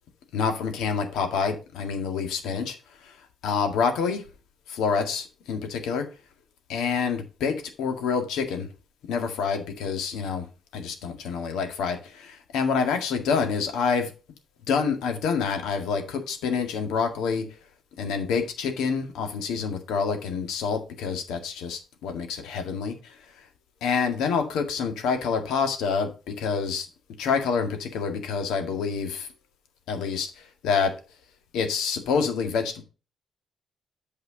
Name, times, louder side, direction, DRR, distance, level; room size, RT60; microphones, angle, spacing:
voice 1, 0.3-2.8 3.0-3.2 3.4-4.2 4.7-6.1 6.7-8.7 9.1-10.5 10.7-14.1 14.7-17.4 18.0-23.4 23.8-26.9 27.2-29.3 29.9-30.9 31.5-32.8, left 5 dB, 90° left, 6 dB, 1.8 m, -27 dB
8.5 x 4.8 x 5.1 m, 0.32 s
cardioid pair, 90°, 0 cm